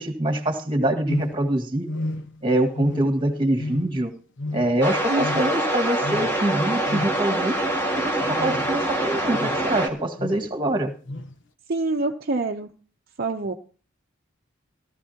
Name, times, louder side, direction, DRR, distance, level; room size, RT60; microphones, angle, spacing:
voice 1, 0.0-1.9 2.4-4.1 4.5-7.6 8.0-10.9, right 1 dB, 25° right, 5 dB, 1.8 m, -24 dB
sound 1, 1.1-1.5 1.8-2.4 2.7-3.3 3.6-4.1 4.4-4.8 5.2-5.6 6.0-6.3 6.9-7.3 8.2-8.8 9.3-9.7 10.2-10.5 11.1-11.3, left 1 dB, 65° left, 1.0 m, -32 dB
sound 2, 4.8-9.9, right 1 dB, 10° left, 1.9 m, -25 dB
voice 2, 5.1-5.4 11.7-12.7 13.2-13.5, right 2 dB, 50° right, 3 dB, 0.7 m, -26 dB
17.5 x 13.5 x 2.9 m, 0.41 s
head